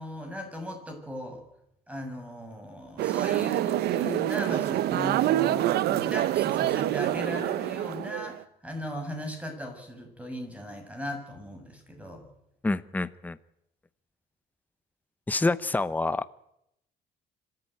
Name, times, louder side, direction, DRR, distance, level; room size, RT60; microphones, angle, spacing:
voice 1, 0.0-1.4 1.9-12.3, left 1 dB, 10° right, 4 dB, 6.9 m, -38 dB
sound 1, 3.0-8.4, right 14 dB, 70° right, 0.8 m, -26 dB
voice 2, 12.6-13.4 15.3-16.2, left 2 dB, 10° left, 14 dB, 0.8 m, -27 dB
26.0 x 14.0 x 9.1 m, 0.80 s
cardioid pair, 110°, 17 cm